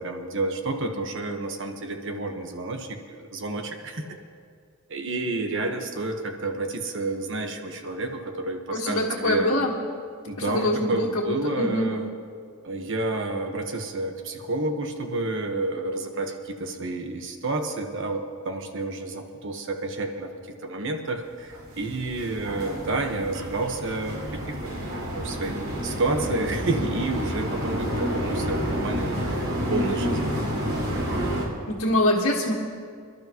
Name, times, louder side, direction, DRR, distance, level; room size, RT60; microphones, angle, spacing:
voice 1, 0.0-4.1 4.9-9.5 10.3-12.1 12.6-20.3 20.6-30.3, right 2 dB, 65° right, 4 dB, 1.3 m, -30 dB
voice 2, 8.7-9.7 10.5-11.9 31.7-32.5, left 1 dB, 80° left, -5 dB, 1.6 m, -24 dB
sound 1, 21.5-31.5, equal, 85° right, 3.7 m, -29 dB
27.5 x 12.0 x 3.0 m, 2.1 s
head